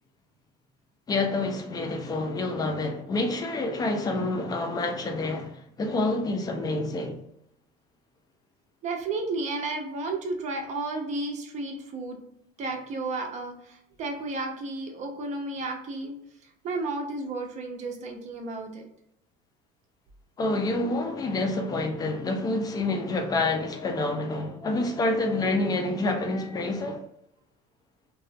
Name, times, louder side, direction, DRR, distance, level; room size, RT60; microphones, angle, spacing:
voice 1, 1.1-7.2 20.4-27.0, left 2 dB, 20° left, 0.3 m, -28 dB
voice 2, 8.8-12.2 12.6-16.2 16.4-18.8 20.8-20.9, right 3 dB, 40° right, 0.5 m, -33 dB
2.4 x 2.2 x 2.5 m
cardioid pair, 155°, 19 cm